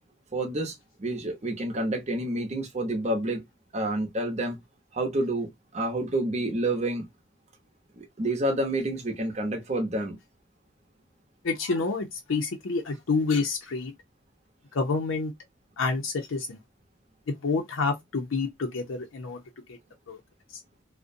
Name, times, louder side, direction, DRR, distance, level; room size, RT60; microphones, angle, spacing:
voice 1, 0.3-3.4 3.7-4.6 4.9-7.1 8.0-10.2, right 1 dB, 35° right, 0.7 m, -29 dB
voice 2, 11.4-13.9 14.7-15.3 15.8-16.6 17.3-19.4 20.1-20.2 20.5-20.6, left 4 dB, 85° left, 0.5 m, -28 dB
2.5 x 2.1 x 2.5 m
head